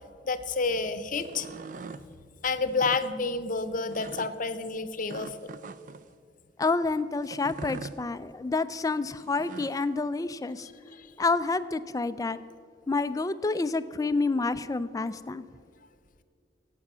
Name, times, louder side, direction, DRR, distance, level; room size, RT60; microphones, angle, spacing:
voice 1, 0.2-1.5 2.4-5.5 10.6-11.1, left 4 dB, 45° left, 11 dB, 0.7 m, -30 dB
sound 1, 1.1-2.0 2.7-3.0 3.9-4.3 5.1-6.0 7.2-8.0 9.2-9.8, right 4 dB, 45° right, 0.4 m, -42 dB
voice 2, 6.6-10.7 11.2-12.4 12.9-15.4, left 3 dB, 20° left, 13 dB, 0.3 m, -28 dB
17.0 x 8.4 x 6.1 m, 2.2 s
head